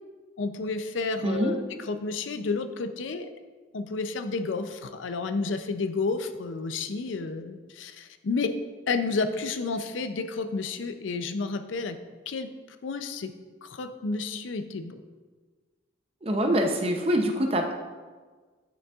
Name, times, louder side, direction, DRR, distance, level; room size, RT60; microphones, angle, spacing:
voice 1, 0.4-3.3 3.7-8.5 8.9-12.0 12.3-12.5 12.8-13.3 13.6-15.0, left 4 dB, 75° left, 9 dB, 0.5 m, -31 dB
voice 2, 1.2-1.5 16.2-17.7, equal, 30° right, 3 dB, 0.6 m, -25 dB
9.0 x 6.2 x 2.4 m, 1.4 s
head